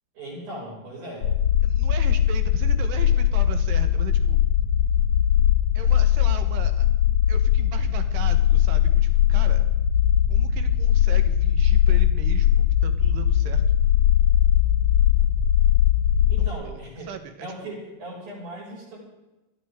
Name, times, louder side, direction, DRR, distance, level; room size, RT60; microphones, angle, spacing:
voice 1, 0.1-1.3 16.3-17.1 17.4-19.0, right 1 dB, 60° right, -3 dB, 7.9 m, -38 dB
sound 1, 1.2-16.5, left 10 dB, 65° left, 2.0 m, -20 dB
voice 2, 1.6-4.4 5.8-6.9 7.3-9.7 10.3-13.6 16.4-16.5 17.1-17.5, right 8 dB, 85° right, 8 dB, 3.3 m, -38 dB
30.0 x 12.5 x 3.7 m, 1.0 s
omnidirectional pair, 4.6 m